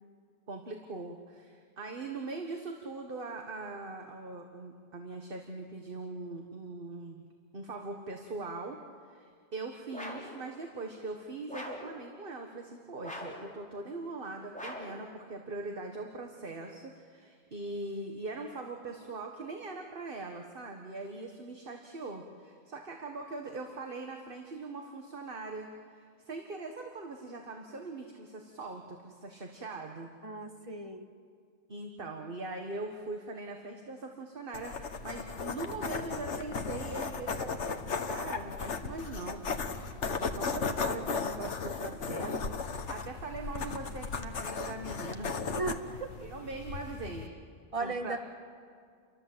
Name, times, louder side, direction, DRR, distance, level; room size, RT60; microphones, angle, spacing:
voice 1, 0.5-7.2 7.5-30.1 31.7-45.3 46.2-47.3 47.8-48.2, right 3 dB, 50° right, 3 dB, 1.8 m, -41 dB
sound 1, 9.9-10.4 11.5-11.9 13.0-13.5 14.5-15.0, equal, 5° left, 3.8 m, -42 dB
voice 2, 30.2-31.1 45.6-45.8 47.7-48.2, right 3 dB, 30° right, 5 dB, 1.8 m, -35 dB
sound 2, 34.5-47.3, left 5 dB, 80° left, 1.6 m, -36 dB
29.5 x 23.5 x 7.9 m, 2.2 s
omnidirectional pair, 1.2 m